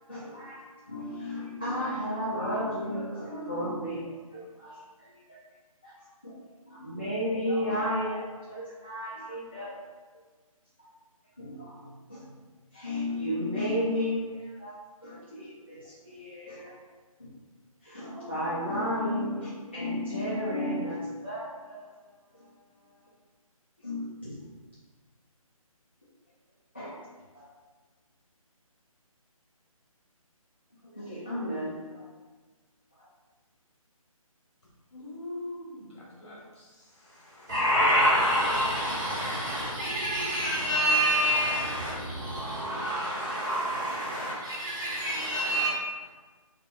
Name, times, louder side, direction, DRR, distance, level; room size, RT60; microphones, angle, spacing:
voice 1, 0.1-5.4 5.8-5.9 6.2-9.8 11.4-12.4 12.7-14.7 15.0-16.7 17.8-22.0 22.3-22.5 23.8-24.3 26.7-27.0 27.3-27.5 30.9-32.0 33.0-33.1, left 1 dB, 20° left, 0.4 m, -33 dB
voice 2, 34.9-39.5 39.8-42.4 42.7-45.7, left 1 dB, 50° left, 1.4 m, -45 dB
voice 3, 37.5-45.7, equal, 35° right, 1.2 m, -27 dB
3.5 x 2.4 x 3.3 m
hypercardioid pair, 175°, 19 cm